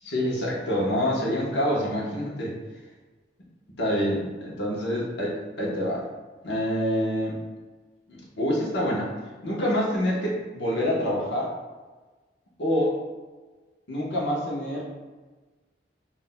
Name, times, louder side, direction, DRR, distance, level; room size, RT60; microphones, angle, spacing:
voice 1, 0.1-2.5 3.8-6.0 6.4-7.3 8.1-9.1 9.4-11.5 12.6-12.9 13.9-14.8, equal, 75° left, -4 dB, 1.0 m, -26 dB
5.8 x 2.6 x 2.2 m, 1.3 s
head